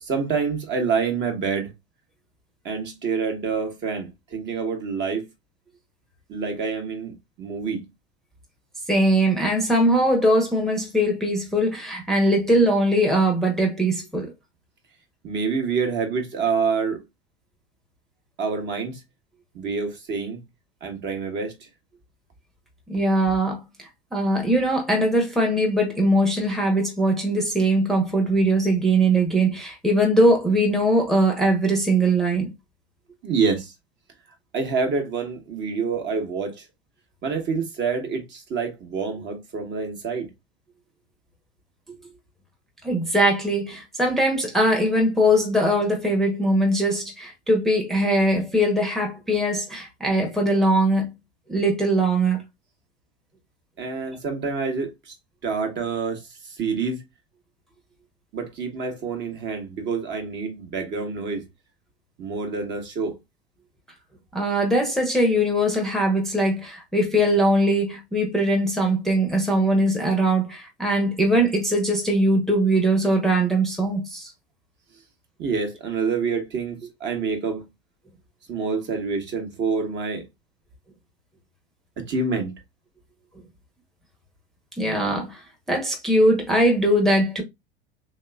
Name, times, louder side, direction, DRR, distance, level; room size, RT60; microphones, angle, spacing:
voice 1, 0.0-1.7 2.6-5.3 6.3-7.8 15.2-17.0 18.4-19.0 19.5-20.4 20.8-21.6 33.2-33.7 34.5-36.6 37.2-40.3 53.8-55.1 55.4-56.2 56.6-57.0 58.3-61.4 62.2-63.2 75.4-77.6 78.5-80.2 82.0-82.5, right 5 dB, 35° right, 1.1 m, -27 dB
voice 2, 8.9-14.3 22.9-32.5 42.8-51.1 51.5-52.4 64.3-74.3 77.2-77.3 84.8-85.4 85.7-87.4, right 1 dB, ahead, 0.8 m, -21 dB
3.3 x 2.9 x 2.3 m
figure-of-eight pair, 80°, 32 cm